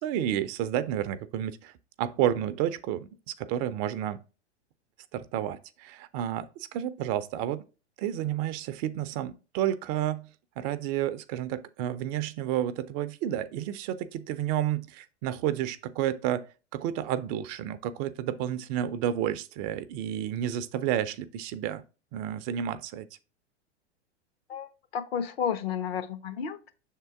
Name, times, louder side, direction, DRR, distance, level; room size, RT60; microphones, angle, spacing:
voice 1, 0.0-1.7 2.0-4.2 5.1-7.6 8.0-10.3 10.6-16.5 16.7-21.8 22.1-23.1, right 11 dB, 35° right, 0.5 m, -31 dB
voice 2, 24.5-26.7, left 7 dB, 60° left, 1.1 m, -32 dB
6.6 x 3.6 x 4.5 m
hypercardioid pair, 105°, 34 cm